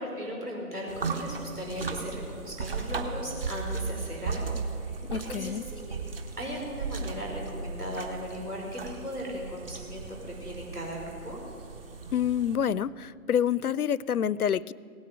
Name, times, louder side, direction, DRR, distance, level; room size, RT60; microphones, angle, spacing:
voice 1, 0.0-6.0 6.4-11.4, equal, 80° right, -1 dB, 5.2 m, -37 dB
sound 1, 0.9-12.6, right 4 dB, 40° right, 1.1 m, -36 dB
voice 2, 5.0-5.6 12.1-14.7, left 9 dB, 75° left, 21 dB, 0.5 m, -27 dB
17.0 x 9.6 x 8.6 m, 2.3 s
figure-of-eight pair, 145°, 45 cm